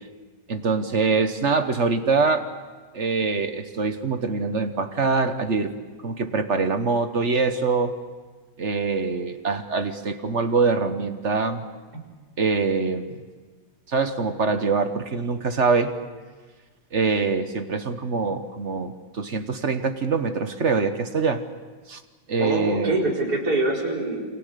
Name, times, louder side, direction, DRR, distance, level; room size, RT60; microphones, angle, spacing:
voice 1, 0.5-2.5 2.9-5.7 6.0-7.9 8.6-11.7 12.4-13.1 13.9-15.9 16.9-21.4 21.9-22.0 22.3-23.0, right 4 dB, 45° right, 8 dB, 1.4 m, -24 dB
voice 2, 22.4-24.4, right 2 dB, 60° right, -2 dB, 5.1 m, -24 dB
29.0 x 26.0 x 6.7 m, 1.3 s
omnidirectional pair, 1.9 m